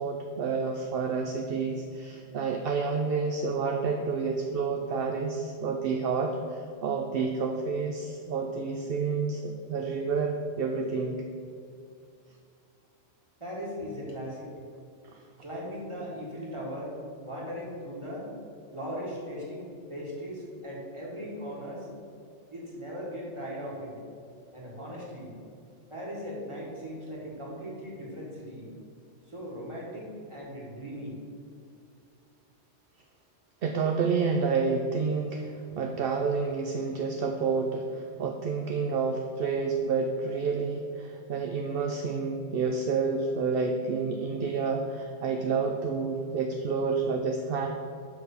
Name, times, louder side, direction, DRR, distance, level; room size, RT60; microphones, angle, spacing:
voice 1, 0.0-11.2 15.0-15.2 33.6-47.7, right 5 dB, 60° right, 3 dB, 0.7 m, -29 dB
voice 2, 13.4-14.5 15.4-17.0 17.2-18.3 18.7-21.9 22.5-24.0 24.5-25.3 25.9-28.7 29.3-31.2, equal, 25° right, -5 dB, 2.0 m, -38 dB
6.8 x 5.9 x 5.6 m, 2.3 s
omnidirectional pair, 1.3 m